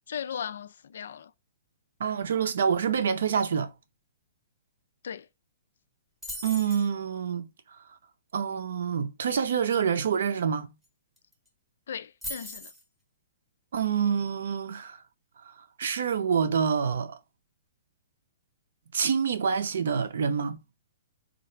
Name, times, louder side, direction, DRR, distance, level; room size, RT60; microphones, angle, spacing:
voice 1, 0.1-1.3 5.0-5.3 11.9-12.7, left 8 dB, 65° left, 0.3 m, -37 dB
voice 2, 2.0-3.7 6.4-7.5 8.3-10.7 13.7-15.0 15.8-17.2 18.9-20.6, right 7 dB, 65° right, 0.6 m, -27 dB
sound 1, 6.2-6.9 10.8-10.9 11.2-11.5 12.2-12.8, left 1 dB, 5° right, 0.8 m, -39 dB
3.9 x 2.5 x 4.3 m
hypercardioid pair, 175°, 0 cm